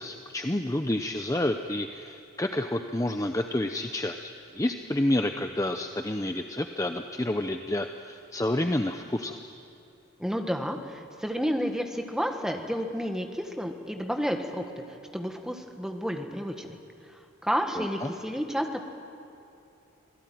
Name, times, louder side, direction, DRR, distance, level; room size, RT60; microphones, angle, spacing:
voice 1, 0.0-9.4 17.8-18.1, left 1 dB, 15° left, 6 dB, 0.6 m, -29 dB
voice 2, 10.2-16.8 17.4-18.8, equal, 5° right, 4 dB, 1.5 m, -31 dB
26.5 x 18.0 x 9.3 m, 2.8 s
head